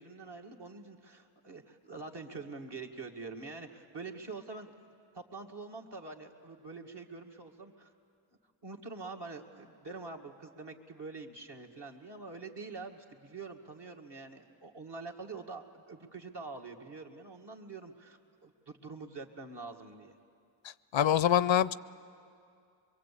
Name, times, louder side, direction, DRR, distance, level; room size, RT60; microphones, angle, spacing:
voice 1, 0.0-4.7 5.1-7.9 8.6-20.2, right 3 dB, 55° right, 2 dB, 2.0 m, -45 dB
voice 2, 20.9-21.7, left 10 dB, 70° left, 17 dB, 0.6 m, -24 dB
23.0 x 23.0 x 8.5 m, 2.4 s
cardioid pair, 45°, 48 cm